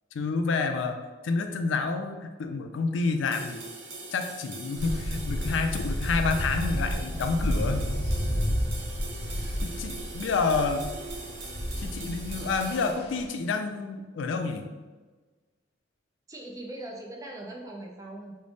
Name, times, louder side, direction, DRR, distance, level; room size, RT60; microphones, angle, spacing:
voice 1, 0.1-1.0 1.2-3.6 4.1-7.9 9.6-10.9 11.8-14.7, left 4 dB, 75° left, 7 dB, 0.3 m, -29 dB
sound 1, 3.3-12.9, right 3 dB, 80° right, 0.8 m, -42 dB
sound 2, 4.8-13.3, equal, 55° left, 0.8 m, -31 dB
voice 2, 16.3-18.4, right 1 dB, 15° right, -1 dB, 0.4 m, -40 dB
3.8 x 2.0 x 3.3 m, 1.3 s
head